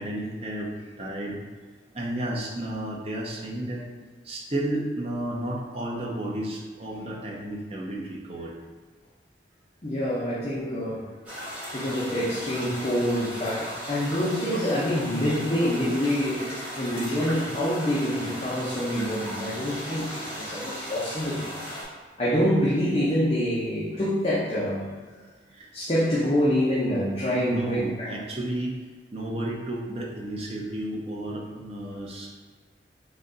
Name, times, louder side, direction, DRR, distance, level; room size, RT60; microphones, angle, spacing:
voice 1, 0.0-1.4 1.9-3.9 4.2-8.6 25.5-25.7 27.3-28.8 29.1-32.3, right 1 dB, 35° right, -2 dB, 0.7 m, -32 dB
voice 2, 9.8-11.1 11.7-21.4 22.2-24.8 25.7-28.2, equal, 30° left, -8 dB, 0.8 m, -26 dB
sound 1, 11.2-21.8, equal, 5° right, 1.5 m, -37 dB
3.9 x 3.2 x 3.9 m, 1.5 s
head